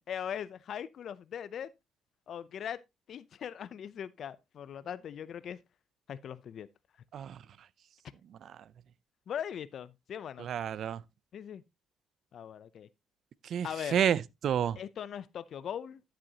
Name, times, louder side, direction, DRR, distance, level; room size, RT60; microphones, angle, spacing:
voice 1, 0.1-1.7 2.3-2.8 3.1-5.6 6.1-6.7 9.3-10.5 11.3-11.6 12.3-12.9 13.6-14.0 14.8-16.0, left 9 dB, 55° left, 0.5 m, -40 dB
voice 2, 10.4-11.0 13.4-14.8, right 9 dB, 60° right, 0.5 m, -30 dB
11.0 x 7.6 x 2.8 m
cardioid pair, 110°, 0 cm